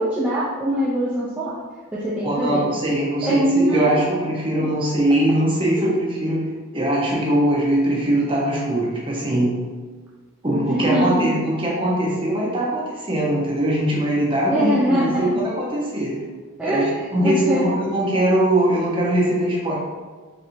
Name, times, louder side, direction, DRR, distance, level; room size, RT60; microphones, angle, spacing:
voice 1, 0.0-1.6 1.9-2.6 3.2-3.8 4.6-4.7 5.8-6.0 10.5-11.3 14.5-15.3 16.6-17.6, equal, 5° right, -9 dB, 0.4 m, -22 dB
voice 2, 2.2-6.4 6.7-9.6 10.4-16.2 16.6-16.9 17.1-19.8, right 1 dB, 25° right, -4 dB, 0.8 m, -21 dB
4.1 x 2.9 x 2.6 m, 1.4 s
head